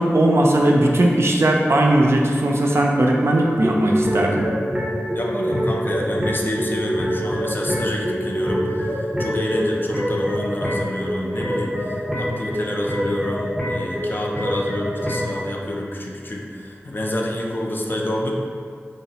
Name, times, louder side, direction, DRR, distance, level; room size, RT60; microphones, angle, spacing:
voice 1, 0.0-4.5, right 1 dB, 60° right, -1 dB, 0.3 m, -18 dB
sound 1, 3.6-15.4, equal, 10° right, 0.6 m, -25 dB
voice 2, 5.1-18.3, left 1 dB, 45° left, -1 dB, 0.4 m, -27 dB
3.0 x 2.0 x 2.7 m, 2.2 s
wide cardioid pair, 45°, 5 cm